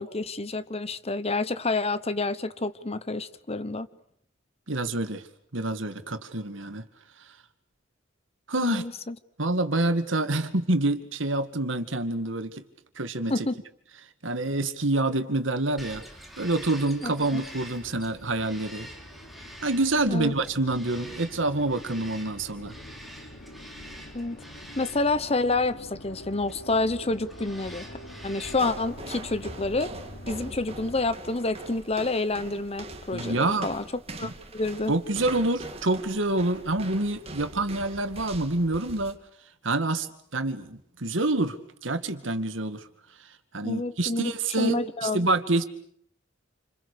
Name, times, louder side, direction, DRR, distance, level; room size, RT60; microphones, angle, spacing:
voice 1, 0.0-3.9 8.6-9.1 13.3-13.5 17.0-17.4 20.1-20.3 24.1-24.4 24.8-27.9 28.2-29.9 30.3-33.8 34.2-34.9 43.6-44.3 44.6-45.3, left 2 dB, 35° left, 1.0 m, -28 dB
voice 2, 4.7-5.2 5.5-6.9 8.5-8.8 9.4-12.6 13.0-13.5 14.2-16.0 16.4-18.9 19.6-22.7 33.1-33.7 34.2-34.3 34.9-39.2 39.6-40.1 40.3-41.6 41.8-42.8 43.5-45.6, right 2 dB, 85° right, 2.2 m, -27 dB
Bird vocalization bird call bird song, 15.8-29.5, right 1 dB, ahead, 3.1 m, -47 dB
sound 1, 17.6-31.1, left 1 dB, 60° left, 2.9 m, -46 dB
sound 2, 28.4-39.2, right 2 dB, 30° right, 2.2 m, -42 dB
28.5 x 27.0 x 6.8 m
head